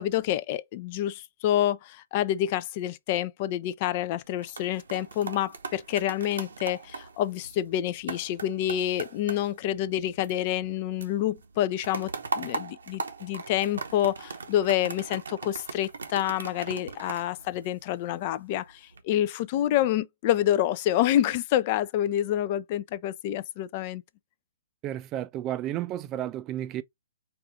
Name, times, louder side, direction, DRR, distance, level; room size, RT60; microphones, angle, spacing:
voice 1, 0.0-24.0, left 12 dB, 40° left, 0.3 m, -28 dB
sound 1, 4.2-10.7 11.0-18.2 18.7-19.0, right 4 dB, 75° right, 0.8 m, -39 dB
voice 2, 24.8-26.8, right 12 dB, 30° right, 0.4 m, -32 dB
4.8 x 2.4 x 3.4 m
hypercardioid pair, 125°, 0 cm